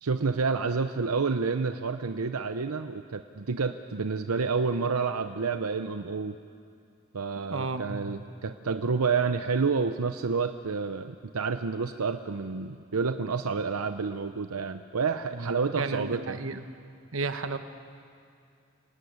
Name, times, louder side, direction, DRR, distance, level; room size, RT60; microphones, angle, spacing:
voice 1, 0.0-6.3 7.1-16.4, right 5 dB, 90° right, 9 dB, 0.7 m, -29 dB
voice 2, 7.5-8.2 15.3-16.6 17.1-17.6, right 3 dB, 65° right, 8 dB, 1.2 m, -33 dB
26.5 x 18.0 x 9.5 m, 2.4 s
head